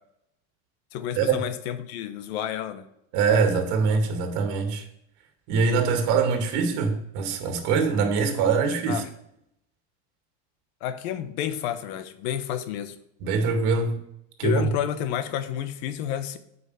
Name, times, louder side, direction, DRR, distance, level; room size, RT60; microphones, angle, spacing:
voice 1, 0.9-2.8 8.9-9.1 10.8-12.9 14.4-16.4, left 10 dB, 60° left, 1.1 m, -30 dB
voice 2, 3.1-4.8 5.5-9.0 13.2-14.0 14.4-14.6, right 5 dB, 55° right, 2.1 m, -23 dB
8.0 x 5.5 x 6.7 m
supercardioid pair, 135°, 35 cm